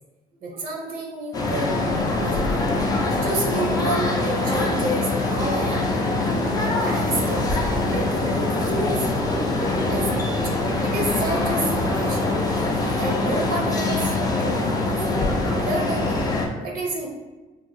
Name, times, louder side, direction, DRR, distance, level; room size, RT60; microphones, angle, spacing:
voice 1, 0.4-2.6 3.2-6.1 6.6-7.5 7.9-9.0 9.9-10.5 10.8-14.9 15.3-16.2 16.6-17.1, right 2 dB, 60° right, 0 dB, 0.6 m, -30 dB
sound 1, 1.3-16.5, left 2 dB, 20° left, 0.4 m, -23 dB
3.0 x 2.1 x 2.6 m, 1.2 s
cardioid pair, 110°, 17 cm